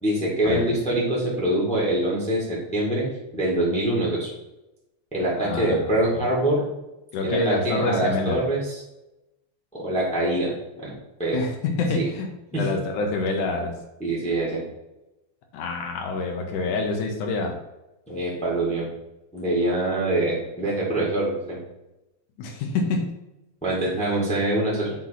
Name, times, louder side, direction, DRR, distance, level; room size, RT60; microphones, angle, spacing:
voice 1, 0.0-3.1 3.3-4.3 5.1-6.7 7.2-8.8 9.7-11.4 11.9-12.0 12.5-12.6 14.0-14.6 18.1-18.8 19.3-21.6 23.6-24.9, right 1 dB, 5° left, -5 dB, 1.7 m, -24 dB
voice 2, 5.4-6.3 7.1-8.4 11.3-13.8 15.5-17.6 22.4-23.1, left 3 dB, 90° left, 2 dB, 2.5 m, -27 dB
6.2 x 4.0 x 5.9 m, 0.95 s
omnidirectional pair, 3.5 m